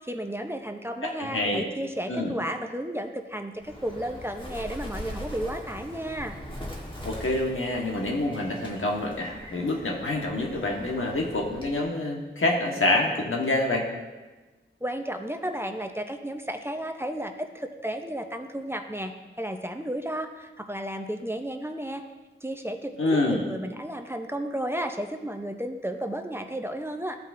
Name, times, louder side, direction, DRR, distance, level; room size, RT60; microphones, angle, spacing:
voice 1, 0.0-6.4 14.8-22.0 22.4-27.2, right 1 dB, 10° right, 5 dB, 0.6 m, -33 dB
voice 2, 1.0-1.6 2.1-2.3 7.0-13.9 23.0-23.4, left 2 dB, 80° left, -1 dB, 1.3 m, -27 dB
Bird, 3.6-11.9, equal, 25° left, 1.4 m, -41 dB
14.5 x 5.4 x 2.5 m, 1.2 s
wide cardioid pair, 70°, 21 cm